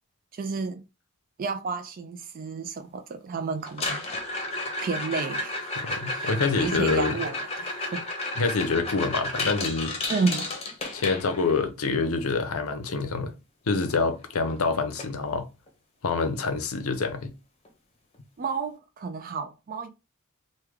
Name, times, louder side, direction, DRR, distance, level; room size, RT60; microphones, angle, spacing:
voice 1, 0.3-0.8 1.4-4.0 4.8-5.7 6.1-8.4 10.1-10.5 18.4-19.9, right 4 dB, 40° right, 0.3 m, -31 dB
sound 1, 3.7-11.6 13.9-14.0 14.2-14.6 15.0-15.1 15.7-15.8 17.6-17.7, left 2 dB, 30° left, 0.7 m, -32 dB
voice 2, 5.8-7.2 8.4-10.0 10.9-13.3 13.7-15.5 16.0-17.3, left 4 dB, 75° left, 0.6 m, -26 dB
3.2 x 2.2 x 3.4 m
head